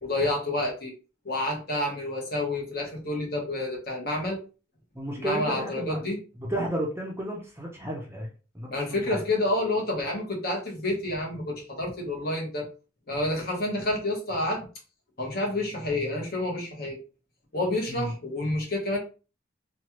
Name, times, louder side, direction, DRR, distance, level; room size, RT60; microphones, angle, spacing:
voice 1, 0.0-0.9 1.2-4.4 5.2-6.2 8.7-12.7 13.1-14.7 15.2-17.0 17.5-19.0, left 1 dB, 50° left, -1 dB, 1.1 m, -29 dB
voice 2, 4.9-6.1 6.4-8.3 8.5-8.7 9.1-9.2 17.9-18.1, right 1 dB, 15° right, 0 dB, 0.6 m, -32 dB
3.1 x 2.3 x 2.9 m, 0.35 s
head